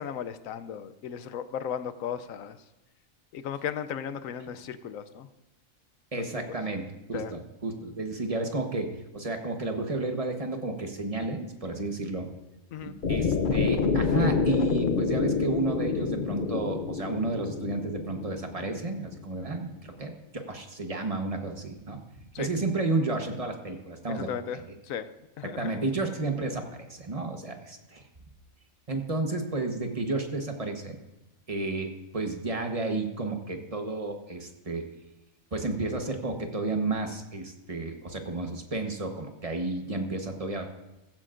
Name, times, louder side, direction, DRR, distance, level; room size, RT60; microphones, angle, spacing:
voice 1, 0.0-2.5 3.3-5.3 7.1-7.3 12.7-12.9 22.3-22.5 24.1-24.6 24.9-25.1 25.4-25.7, left 8 dB, 75° left, 12 dB, 1.0 m, -35 dB
voice 2, 6.1-12.3 12.8-22.0 22.4-24.7 25.4-26.6 26.9-28.0 28.9-31.0 31.5-34.9 35.5-40.7, right 2 dB, 25° right, 4 dB, 1.1 m, -32 dB
sound 1, 13.0-19.1, left 5 dB, 50° left, 0.7 m, -27 dB
15.5 x 15.0 x 2.5 m, 0.99 s
omnidirectional pair, 1.4 m